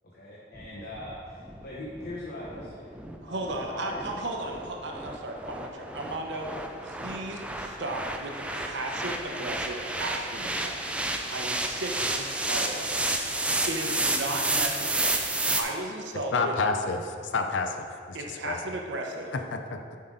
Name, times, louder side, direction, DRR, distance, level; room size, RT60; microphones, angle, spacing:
voice 1, 0.1-2.9 3.2-4.0 5.0-5.2, left 1 dB, 60° left, -5 dB, 1.0 m, -41 dB
sound 1, 0.5-15.6, right 2 dB, 5° right, 0.4 m, -31 dB
voice 2, 3.2-6.5 6.8-10.8 11.1-13.1 13.5-15.2 15.6-16.6 18.1-19.3, right 2 dB, 75° right, 1 dB, 0.9 m, -35 dB
voice 3, 16.3-17.9 18.4-18.6 19.5-20.0, left 3 dB, 90° left, 6 dB, 0.5 m, -28 dB
7.4 x 5.8 x 3.9 m, 2.2 s
head